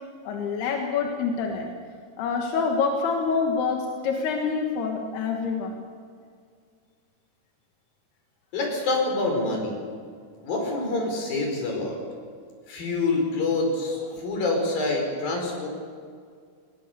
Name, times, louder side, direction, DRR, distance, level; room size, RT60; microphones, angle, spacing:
voice 1, 0.3-1.7 2.2-5.8 14.1-14.2, left 5 dB, 90° left, 1 dB, 3.6 m, -26 dB
voice 2, 8.5-9.8 10.4-12.0 12.7-15.7, left 2 dB, 65° left, 1 dB, 6.8 m, -26 dB
21.5 x 20.5 x 6.8 m, 2.1 s
omnidirectional pair, 4.5 m